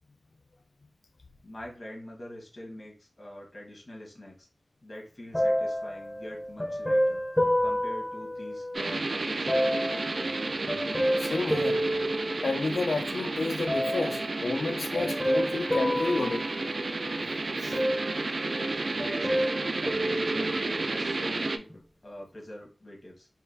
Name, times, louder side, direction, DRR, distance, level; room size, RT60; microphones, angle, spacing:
voice 1, 1.4-4.5 4.8-7.2 7.6-9.5 9.8-10.4 19.0-23.3, left 1 dB, 45° left, 1.3 m, -44 dB
sound 1, 5.3-8.9 9.5-13.0 13.7-14.3 14.9-17.3 17.7-18.7 19.0-21.0 21.7-21.8, equal, 20° left, 0.6 m, -30 dB
sound 2, 8.7-21.6, right 3 dB, 65° right, 0.3 m, -32 dB
voice 2, 11.2-11.8 12.4-16.5 17.6-17.8, left 3 dB, 80° left, 0.3 m, -30 dB
4.1 x 2.3 x 2.6 m
wide cardioid pair, 80°, 0 cm